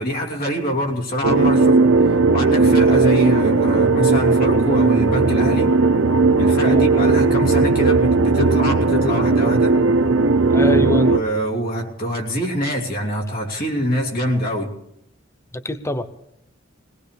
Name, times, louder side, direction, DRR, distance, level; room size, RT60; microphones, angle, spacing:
voice 1, 0.0-5.8 6.4-9.8 10.7-14.7, equal, 45° left, 0 dB, 2.9 m, -24 dB
sound 1, 1.2-11.2, right 3 dB, 85° right, 0.7 m, -16 dB
voice 2, 10.5-11.1 15.5-16.1, left 1 dB, 15° left, 11 dB, 0.7 m, -24 dB
22.0 x 18.5 x 3.4 m, 0.77 s
head